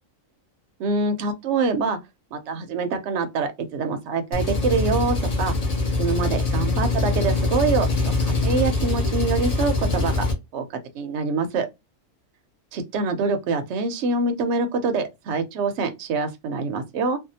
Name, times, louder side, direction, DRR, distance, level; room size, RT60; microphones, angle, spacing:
voice 1, 0.8-2.0 2.3-5.5 6.0-10.2 10.5-10.6 10.9-11.7 12.7-17.2, right 4 dB, 65° right, 0.8 m, -25 dB
Engine, 4.3-10.3, left 3 dB, 40° left, 0.6 m, -23 dB
2.6 x 2.2 x 2.7 m
omnidirectional pair, 1.5 m